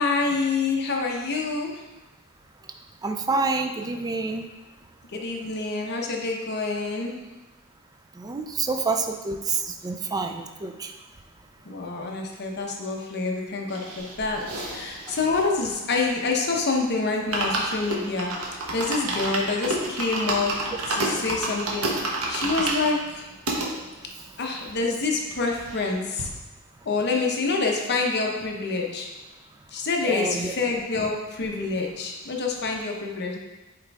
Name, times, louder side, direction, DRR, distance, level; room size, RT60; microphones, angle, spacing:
voice 1, 0.0-1.8 5.1-7.2 11.7-23.3 24.4-26.3 26.9-29.1 29.7-33.4, left 3 dB, 50° left, 1 dB, 0.9 m, -27 dB
voice 2, 3.0-4.5 8.2-10.9 15.1-15.2 30.0-30.5, right 3 dB, 15° right, 5 dB, 0.3 m, -28 dB
sound 1, 13.7-16.5 16.8-16.9 17.1-23.7 24.3-24.4 24.5-24.6 24.9-25.9 26.2-26.3, right 2 dB, 90° right, 1.1 m, -30 dB
8.0 x 3.5 x 3.5 m, 1.1 s
head